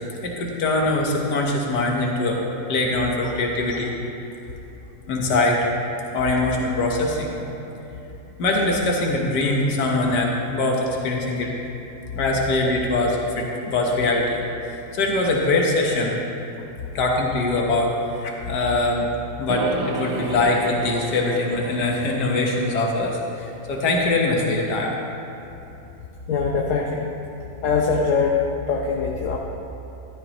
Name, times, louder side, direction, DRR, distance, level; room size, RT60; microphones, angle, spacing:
voice 1, 0.2-2.4 2.7-3.9 5.1-5.6 6.1-7.3 8.4-11.5 12.1-16.2 17.0-19.1 19.4-24.9, left 2 dB, 85° left, -1 dB, 1.8 m, -22 dB
sound 1, 19.5-23.6, right 3 dB, 85° right, 1.4 m, -32 dB
voice 2, 26.3-27.0 27.6-28.4 28.7-29.4, left 5 dB, 55° left, -1 dB, 1.1 m, -22 dB
14.0 x 13.0 x 3.0 m, 3.0 s
omnidirectional pair, 1.7 m